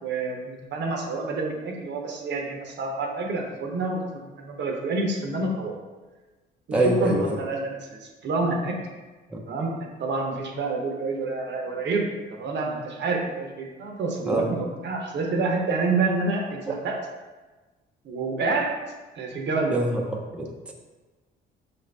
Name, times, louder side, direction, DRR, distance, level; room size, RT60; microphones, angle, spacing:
voice 1, 0.0-5.7 6.7-8.7 9.5-17.0 18.0-18.7 19.1-19.8, right 3 dB, 65° right, 1 dB, 0.8 m, -28 dB
voice 2, 6.7-7.3 9.3-9.4 14.3-14.5 19.7-20.7, right 1 dB, 5° right, 0 dB, 0.5 m, -25 dB
5.5 x 2.6 x 3.3 m, 1.2 s
cardioid pair, 90°, 20 cm